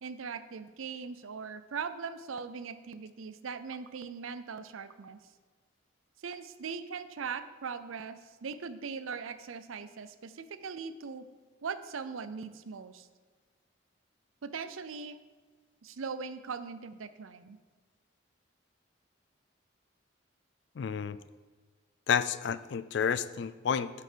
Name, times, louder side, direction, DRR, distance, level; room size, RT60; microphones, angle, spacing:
voice 1, 0.0-5.2 6.2-11.3 11.6-13.1 14.4-15.2 15.8-17.6, right 5 dB, 90° right, 12 dB, 0.5 m, -40 dB
voice 2, 20.8-21.2 22.1-23.9, left 7 dB, 60° left, 15 dB, 0.3 m, -30 dB
7.8 x 6.9 x 4.5 m, 1.4 s
head